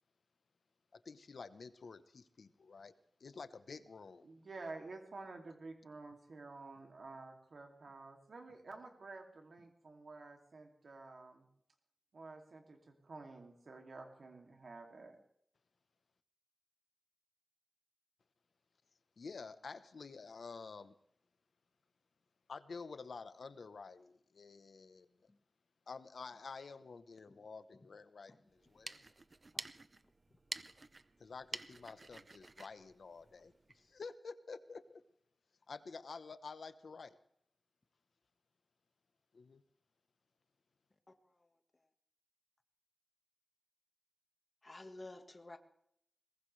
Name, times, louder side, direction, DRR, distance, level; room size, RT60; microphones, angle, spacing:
voice 1, 0.9-2.9 3.2-4.3 19.2-20.9 22.5-25.1 25.9-29.0 31.2-35.0 35.7-37.2 39.3-39.6, left 4 dB, 75° left, 12 dB, 1.0 m, -50 dB
voice 2, 4.2-11.5 12.1-15.2, right 3 dB, 70° right, 3 dB, 2.6 m, -51 dB
sound 1, 28.6-33.9, right 3 dB, 40° right, 0.7 m, -49 dB
voice 3, 44.6-45.6, left 2 dB, 35° left, 6 dB, 1.6 m, -51 dB
22.0 x 19.0 x 3.3 m, 0.69 s
wide cardioid pair, 90°, 0 cm